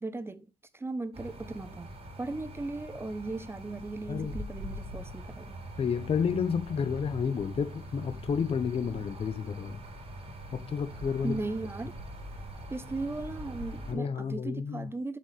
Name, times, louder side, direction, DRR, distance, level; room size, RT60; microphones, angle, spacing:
voice 1, 0.0-5.6 11.2-12.0 12.7-15.2, right 2 dB, 15° right, 0.8 m, -37 dB
sound 1, 1.1-13.9, equal, 35° right, 3.8 m, -43 dB
voice 2, 5.8-9.8 10.5-11.4 13.9-14.9, left 6 dB, 35° left, 1.0 m, -31 dB
8.1 x 7.6 x 3.3 m
cardioid pair, 110°, 17 cm